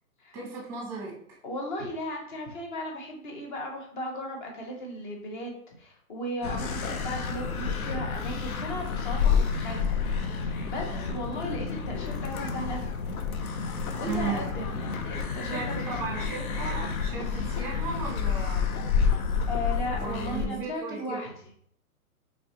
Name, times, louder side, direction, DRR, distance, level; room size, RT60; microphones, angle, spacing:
voice 1, 0.3-1.4 10.9-11.2 14.1-14.4 15.5-18.8 19.9-21.2, right 4 dB, 5° right, -2 dB, 0.9 m, -36 dB
voice 2, 1.4-12.9 14.0-16.1 19.5-21.3, left 1 dB, 35° left, 1 dB, 0.9 m, -36 dB
sound 1, 6.4-20.5, left 6 dB, 70° left, 0.7 m, -29 dB
4.3 x 3.2 x 2.8 m, 0.66 s
hypercardioid pair, 150°, 45 cm